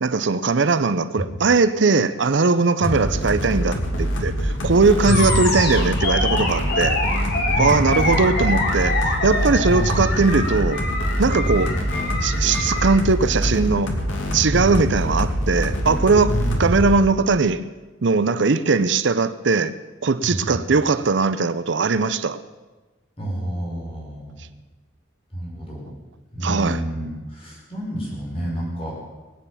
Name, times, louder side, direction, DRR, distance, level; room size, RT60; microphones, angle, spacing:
voice 1, 0.0-7.0 7.6-10.8 11.2-11.7 12.2-13.9 14.3-16.3 16.6-17.6 18.0-19.7 20.0-22.4 26.4-26.8, right 4 dB, 70° right, 0.6 m, -20 dB
sound 1, 2.8-17.0, equal, 90° left, 2.5 m, -25 dB
Animal, 5.0-13.0, left 2 dB, 55° left, 2.6 m, -26 dB
voice 2, 5.0-5.6 7.5-8.1 9.6-10.3 11.4-11.6 14.5-15.2 16.3-17.0 20.2-20.8 23.2-24.4 25.3-25.9 26.3-29.0, equal, 30° left, 5.4 m, -28 dB
20.5 x 9.3 x 7.3 m
head